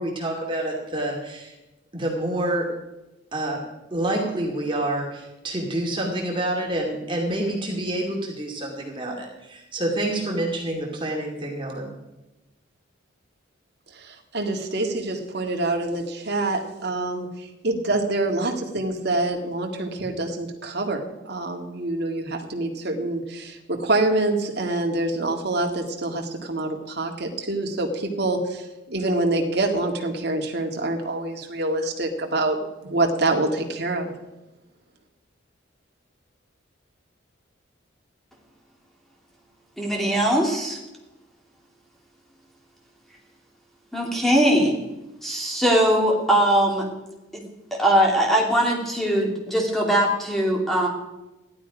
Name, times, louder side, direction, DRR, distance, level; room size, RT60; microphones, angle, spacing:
voice 1, 0.0-1.6 1.9-2.7 3.3-3.6 3.9-11.9, right 1 dB, 25° right, -1 dB, 2.5 m, -27 dB
voice 2, 14.0-17.3 17.6-28.6 28.9-34.1, right 2 dB, 55° right, 2 dB, 2.0 m, -26 dB
voice 3, 39.8-40.8 43.9-44.8 45.2-46.9 47.3-47.4 47.7-50.9, equal, ahead, -1 dB, 2.8 m, -21 dB
15.5 x 12.0 x 5.1 m, 0.99 s
head